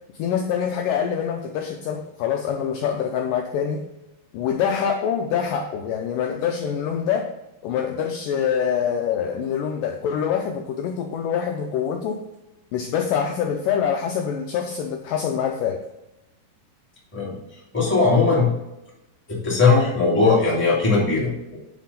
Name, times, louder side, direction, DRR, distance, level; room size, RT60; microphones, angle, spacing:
voice 1, 0.2-3.9 4.3-7.3 7.6-12.3 12.7-15.8, left 8 dB, 90° left, 3 dB, 1.9 m, -25 dB
voice 2, 17.7-18.5 19.3-21.6, left 4 dB, 5° left, -6 dB, 1.8 m, -19 dB
9.4 x 3.7 x 5.6 m, 0.93 s
omnidirectional pair, 4.6 m